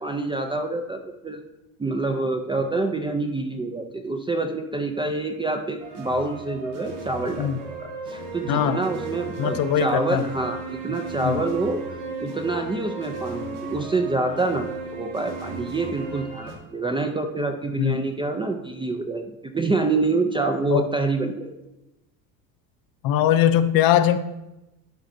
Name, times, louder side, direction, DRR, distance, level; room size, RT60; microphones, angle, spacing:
voice 1, 0.0-1.4 1.8-7.5 7.8-21.6, right 3 dB, 10° right, 5 dB, 0.4 m, -27 dB
sound 1, 5.8-16.6, right 3 dB, 65° right, 2.2 m, -35 dB
voice 2, 8.5-8.8 9.4-10.2 11.2-11.4 17.8-18.0 20.7-20.9 23.0-24.2, left 10 dB, 50° left, 11 dB, 0.6 m, -20 dB
11.5 x 4.9 x 2.6 m, 0.95 s
supercardioid pair, 100°, 45 cm